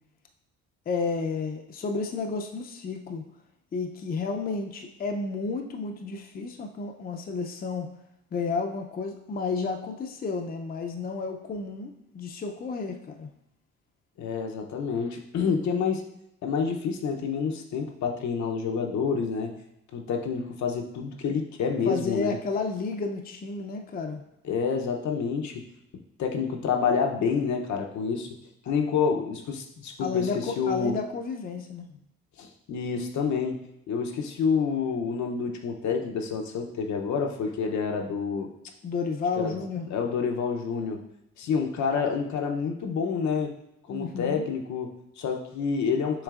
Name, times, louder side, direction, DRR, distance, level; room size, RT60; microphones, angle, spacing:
voice 1, 0.9-3.2 3.7-7.9 8.3-13.3 21.8-24.2 30.0-31.9 38.8-39.9 43.9-44.5, left 4 dB, 30° left, 4 dB, 0.5 m, -31 dB
voice 2, 14.2-16.0 16.4-19.5 19.9-22.4 24.4-25.6 26.2-28.3 28.7-30.9 32.4-38.5 39.4-39.6 39.9-41.0 41.4-43.5 43.9-46.2, left 6 dB, 65° left, 2 dB, 0.7 m, -28 dB
6.2 x 3.3 x 2.4 m, 0.84 s
cardioid pair, 90°, 30 cm